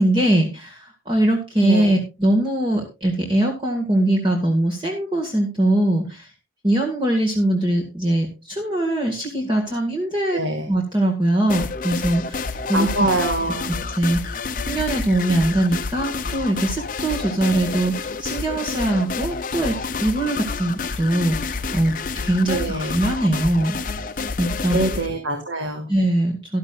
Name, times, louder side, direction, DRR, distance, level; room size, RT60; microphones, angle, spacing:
voice 1, 0.0-6.3 6.6-10.4 10.7-12.9 14.0-14.4 14.6-24.0 24.4-24.8 25.9-26.6, right 1 dB, 25° right, 0 dB, 1.9 m, -22 dB
voice 2, 1.6-1.9 10.3-10.7 12.7-13.7 22.4-23.0 24.7-25.8, right 2 dB, 85° right, 4 dB, 2.0 m, -24 dB
sound 1, 11.5-25.1, left 4 dB, 45° left, 0.7 m, -29 dB
14.0 x 12.0 x 2.5 m, 0.27 s
head